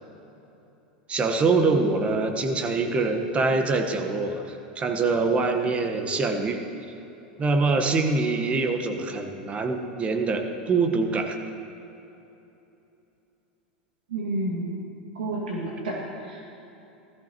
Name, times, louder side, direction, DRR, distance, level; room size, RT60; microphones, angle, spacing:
voice 1, 1.1-6.6 7.4-11.4, right 3 dB, 25° right, 5 dB, 1.2 m, -24 dB
voice 2, 14.1-14.8 15.2-16.0 16.3-16.5, right 2 dB, 85° right, -2 dB, 2.1 m, -30 dB
16.5 x 14.0 x 3.0 m, 3.0 s
hypercardioid pair, 100°, 5 cm